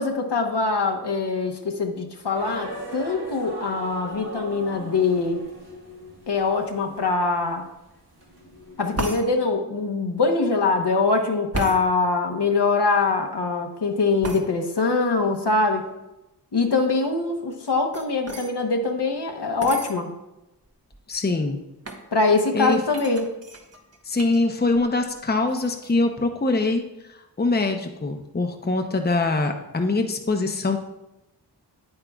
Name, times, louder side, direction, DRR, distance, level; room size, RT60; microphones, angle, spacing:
voice 1, 0.0-5.4 6.3-7.6 8.8-15.8 16.5-20.1 22.1-23.2, left 3 dB, 70° left, 4 dB, 1.1 m, -23 dB
sound 1, 2.3-9.0, right 1 dB, 65° right, 3.1 m, -38 dB
sound 2, 9.0-9.2 11.5-11.8 14.2-14.4 17.5-18.5 19.6-19.9 20.6-20.7 20.9-21.3 21.8-22.1 22.9-24.4 24.7-25.2 25.5-25.9, right 2 dB, 35° right, 1.1 m, -33 dB
voice 2, 21.1-21.6 22.5-22.8 24.1-26.8 27.1-30.8, left 3 dB, 25° left, 4 dB, 0.8 m, -23 dB
8.9 x 8.8 x 2.4 m, 0.94 s
cardioid pair, 45°, 42 cm